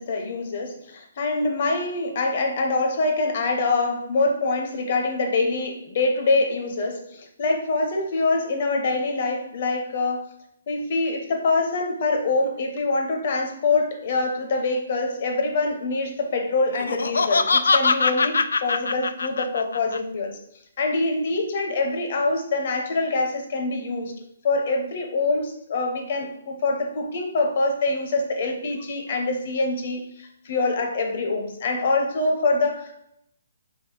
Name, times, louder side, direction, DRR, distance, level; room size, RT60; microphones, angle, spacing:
voice 1, 0.0-10.3 10.7-20.4 20.8-24.1 24.4-33.0, left 3 dB, 40° left, 3 dB, 0.8 m, -25 dB
Laughter, 16.7-20.0, left 4 dB, 85° left, 0.3 m, -22 dB
3.6 x 3.0 x 4.7 m, 0.75 s
hypercardioid pair, 170°, 0 cm